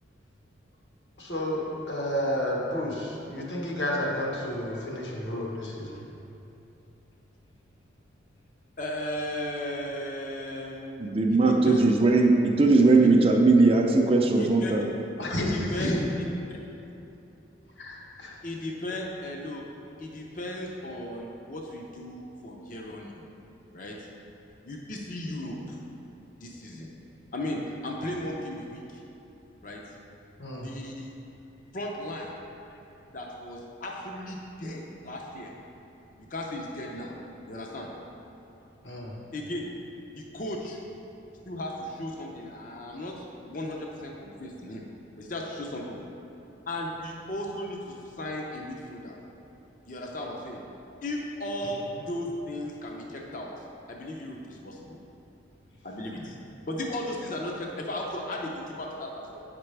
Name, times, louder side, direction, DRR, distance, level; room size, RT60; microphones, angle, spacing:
voice 1, 1.2-6.0 15.2-16.0 17.8-18.4 30.4-30.7 38.8-39.1 51.6-51.7, left 1 dB, 70° left, -3 dB, 1.2 m, -31 dB
voice 2, 8.8-10.9 11.3-11.8 14.4-14.7 15.4-16.0 18.4-19.6 20.0-23.2 23.7-24.0 24.6-25.8 26.4-26.9 27.3-29.0 29.6-29.8 30.6-31.1 31.7-32.3 33.1-35.5 36.3-37.1 37.5-37.9 39.3-39.7 40.1-40.8 41.4-43.1 43.4-44.8 45.2-46.0 46.7-49.2 49.9-50.6 51.0-53.5 53.9-55.0 55.8-56.4 56.7-59.4, left 1 dB, 45° left, -1 dB, 0.6 m, -36 dB
voice 3, 11.0-14.9, right 3 dB, 30° right, 2 dB, 0.5 m, -19 dB
8.5 x 5.9 x 3.3 m, 2.9 s
head